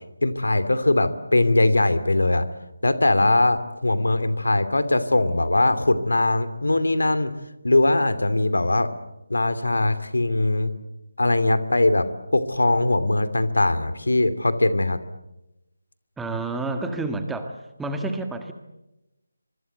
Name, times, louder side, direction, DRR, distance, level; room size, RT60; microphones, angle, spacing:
voice 1, 0.2-2.4 2.8-7.3 7.6-8.9 9.3-10.7 11.2-12.1 12.3-15.0, left 2 dB, 75° left, 12 dB, 2.6 m, -21 dB
voice 2, 16.2-17.5 17.8-18.5, right 2 dB, 5° right, 6 dB, 1.7 m, -29 dB
25.5 x 24.0 x 8.0 m, 0.94 s
figure-of-eight pair, 160°, 0 cm